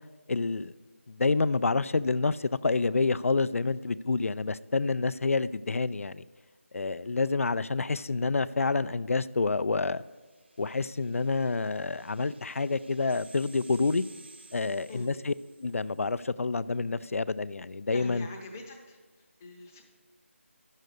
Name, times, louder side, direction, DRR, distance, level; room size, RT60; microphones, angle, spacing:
voice 1, 0.3-0.7 1.1-6.2 6.7-10.0 10.6-14.0 14.5-15.3 15.6-18.3, left 3 dB, 80° left, 16 dB, 0.4 m, -28 dB
sound 1, 10.0-15.9, right 3 dB, 50° right, 0.7 m, -56 dB
voice 2, 17.9-19.8, left 2 dB, 10° left, 0 dB, 0.7 m, -44 dB
9.4 x 6.5 x 6.4 m, 1.4 s
figure-of-eight pair, 175°, 7 cm